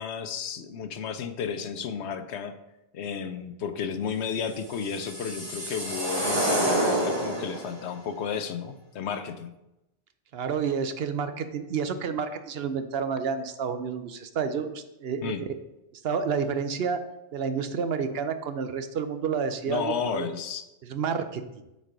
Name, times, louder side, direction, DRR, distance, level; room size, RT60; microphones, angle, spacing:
voice 1, 0.0-2.5 2.9-9.5 15.2-15.4 19.7-20.6, left 7 dB, 85° left, 9 dB, 1.0 m, -33 dB
sound 1, 4.5-7.7, right 1 dB, 25° right, 1.7 m, -28 dB
voice 2, 10.3-15.3 16.0-17.0 17.3-20.3 20.9-21.4, right 6 dB, 70° right, 9 dB, 0.9 m, -29 dB
8.2 x 4.3 x 5.0 m, 0.93 s
omnidirectional pair, 1.1 m